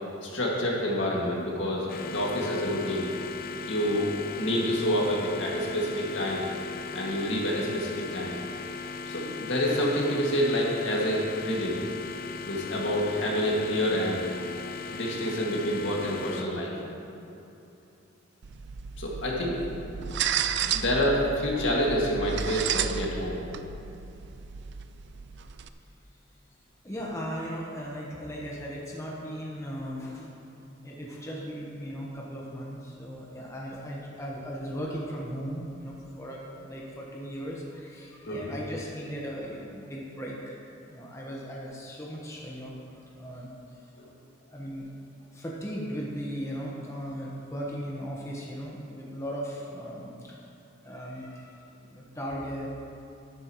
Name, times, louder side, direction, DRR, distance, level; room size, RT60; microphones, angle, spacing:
voice 1, 0.2-3.1 3.7-4.1 4.4-6.5 6.9-8.4 9.1-11.8 12.4-14.3 14.9-16.7 19.0-20.2 20.6-23.4 38.3-38.5, equal, 70° left, -3 dB, 2.1 m, -28 dB
sound 1, 1.9-16.4, left 5 dB, 50° left, 0.7 m, -38 dB
sound 2, 18.4-25.7, right 8 dB, 60° right, 0.4 m, -33 dB
voice 2, 26.8-30.3 30.8-40.6 40.9-42.8 43.2-43.9 44.5-44.9 45.3-50.4 50.8-51.5 51.8-52.7, equal, 15° left, -4 dB, 1.2 m, -37 dB
12.0 x 12.0 x 3.1 m, 2.8 s
head